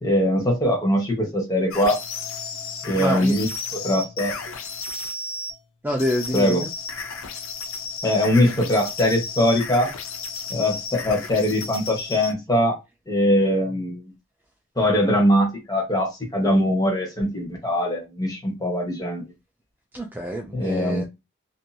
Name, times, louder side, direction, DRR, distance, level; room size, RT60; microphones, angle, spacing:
voice 1, 0.0-2.0 2.8-4.3 6.3-6.7 8.0-9.9 10.5-12.8 13.1-14.1 14.8-19.2 20.5-21.0, left 1 dB, 20° left, 1.0 m, -22 dB
sound 1, 1.7-5.5 6.0-12.3, left 4 dB, 80° left, 0.6 m, -33 dB
voice 2, 2.9-3.3 5.8-6.7 19.9-21.0, equal, 10° right, 0.3 m, -27 dB
2.7 x 2.6 x 2.2 m
head